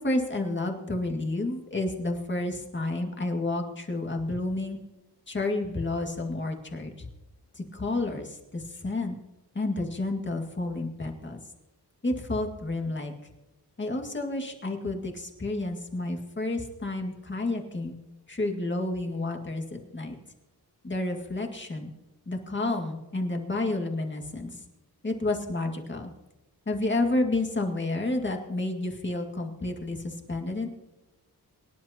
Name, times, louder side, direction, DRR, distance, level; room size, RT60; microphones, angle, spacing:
voice 1, 0.0-4.8 5.3-7.1 7.5-9.2 9.5-11.4 12.0-13.1 13.8-17.9 18.3-20.2 20.8-21.9 22.3-24.6 25.0-26.1 26.7-30.7, left 2 dB, 30° left, 2 dB, 2.1 m, -30 dB
24.0 x 11.0 x 2.9 m, 1.0 s
wide cardioid pair, 130°, 40 cm